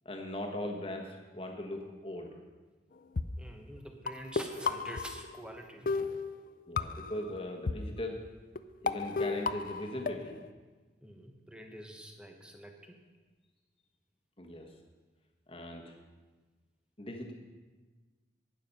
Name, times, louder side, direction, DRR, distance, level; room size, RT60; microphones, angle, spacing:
voice 1, 0.0-2.3 6.7-8.2 8.8-10.4 14.4-14.7 15.5-15.9 17.0-17.3, left 1 dB, 30° left, 2 dB, 1.3 m, -39 dB
sound 1, 3.2-3.3 4.1-5.6 5.9-7.2 7.7-7.8 8.6-8.7 8.9-10.5, left 4 dB, 45° left, 0.4 m, -33 dB
voice 2, 3.4-5.9 11.0-13.0, right 1 dB, 5° right, 3 dB, 1.0 m, -47 dB
11.5 x 9.5 x 5.5 m, 1.3 s
head